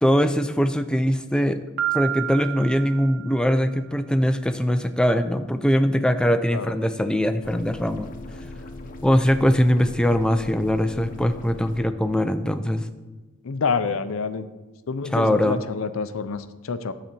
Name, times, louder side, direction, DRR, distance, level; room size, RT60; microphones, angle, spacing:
voice 1, 0.0-1.6 1.9-8.1 9.0-12.9 15.1-15.6, equal, 5° left, 9 dB, 0.4 m, -21 dB
Piano, 1.8-3.7, right 12 dB, 55° right, 0.8 m, -30 dB
sound 1, 7.4-11.8, left 2 dB, 40° left, 0.8 m, -39 dB
voice 2, 13.4-14.5 14.9-16.9, left 5 dB, 70° left, 11 dB, 0.5 m, -27 dB
10.0 x 4.1 x 7.5 m, 1.2 s
head